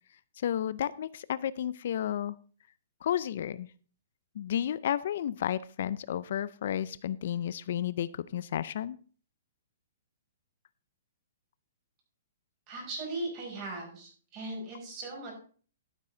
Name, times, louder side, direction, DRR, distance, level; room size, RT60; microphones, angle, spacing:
voice 1, 0.4-2.4 3.0-3.7 4.3-9.0, left 10 dB, 60° left, 19 dB, 0.4 m, -32 dB
voice 2, 12.7-15.3, right 2 dB, 30° right, -1 dB, 5.3 m, -38 dB
12.5 x 7.5 x 3.8 m, 0.42 s
hypercardioid pair, 155°, 0 cm